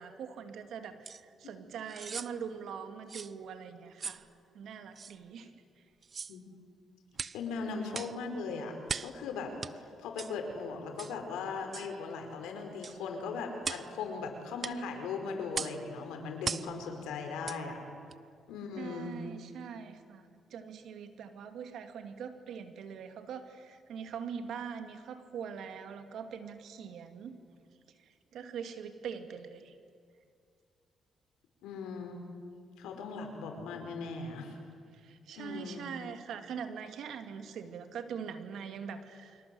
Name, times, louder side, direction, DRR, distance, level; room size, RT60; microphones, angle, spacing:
voice 1, 0.0-4.2 4.5-5.5 18.8-20.2 20.5-27.4 28.3-29.7 34.9-39.4, right 7 dB, 75° right, 7 dB, 2.5 m, -42 dB
sound 1, 1.0-1.2 1.9-2.3 3.1-3.3 4.0-4.2 5.0-5.1 6.0-6.4 7.1-7.4 7.9-8.2 8.9-9.2 9.6-9.7 10.2-10.3 11.0-11.2 11.7-11.9 12.8-13.0 13.6-13.9 14.6-14.8 15.5-15.8 16.4-16.7 17.4-17.6 18.1-18.2, right 5 dB, 45° right, 0.7 m, -38 dB
voice 2, 7.3-17.8 18.5-19.2 31.6-32.3 32.8-34.5 35.4-35.9, left 4 dB, 90° left, 4 dB, 4.9 m, -39 dB
29.5 x 25.0 x 7.9 m, 2.2 s
cardioid pair, 70°, 0 cm